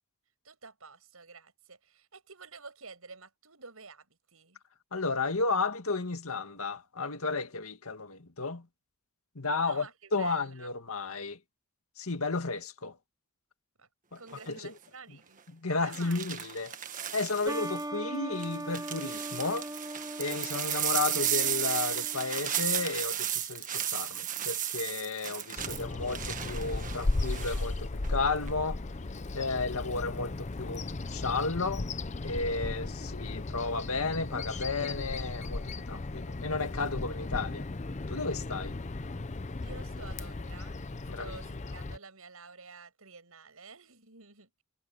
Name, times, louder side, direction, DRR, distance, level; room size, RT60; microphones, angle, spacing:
voice 1, 0.4-4.6 9.6-10.7 13.8-13.9 14.2-15.4 15.7-16.2 39.6-40.8 41.2-44.5, right 4 dB, 80° right, 6.5 m, -50 dB
voice 2, 4.9-8.7 9.4-11.4 12.0-13.0 14.1-14.2 14.5-14.7 15.5-16.8 17.1-19.7 20.2-28.8 29.3-31.9 32.2-37.7 38.1-38.7 41.1-41.4, left 3 dB, 80° left, 2.0 m, -33 dB
sound 1, 14.3-14.6 15.9-17.8 18.4-27.7 28.0-28.5, right 10 dB, 35° right, 1.5 m, -34 dB
sound 2, 17.5-22.9, right 1 dB, 15° right, 0.8 m, -40 dB
Bird vocalization bird call bird song, 25.6-42.0, left 2 dB, 35° left, 0.6 m, -36 dB
head